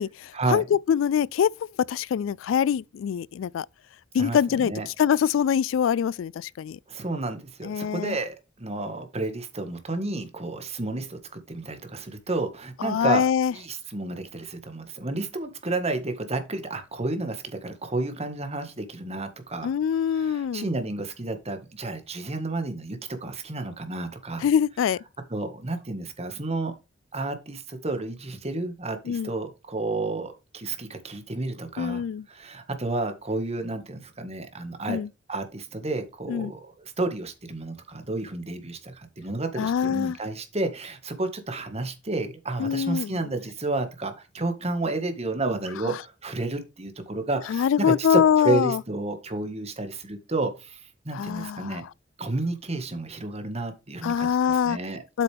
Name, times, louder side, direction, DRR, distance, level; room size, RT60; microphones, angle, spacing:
voice 1, 0.0-1.5 1.9-3.7 4.1-6.8 7.6-8.2 12.8-13.5 19.6-20.7 24.4-25.0 29.1-29.3 31.8-32.2 34.9-35.1 36.3-36.5 39.6-40.2 42.6-43.1 45.9-46.0 47.5-48.8 51.1-51.8 54.0-54.8 55.1-55.2, left 8 dB, 85° left, 0.3 m, -24 dB
voice 2, 4.2-4.9 6.9-13.2 13.5-19.7 20.1-24.5 25.3-26.7 27.1-32.0 32.3-35.0 35.3-51.8 52.2-55.0, right 2 dB, 35° right, 1.7 m, -31 dB
8.0 x 6.7 x 3.5 m
head